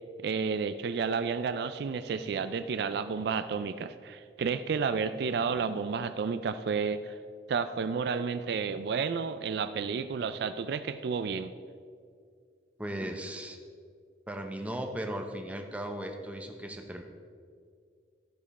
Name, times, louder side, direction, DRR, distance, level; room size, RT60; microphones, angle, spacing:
voice 1, 0.2-7.2 7.5-11.5, right 5 dB, 60° right, 11 dB, 0.3 m, -31 dB
voice 2, 12.8-13.6 14.3-17.0, right 1 dB, 10° right, 4 dB, 0.7 m, -37 dB
13.5 x 5.2 x 4.2 m, 2.1 s
head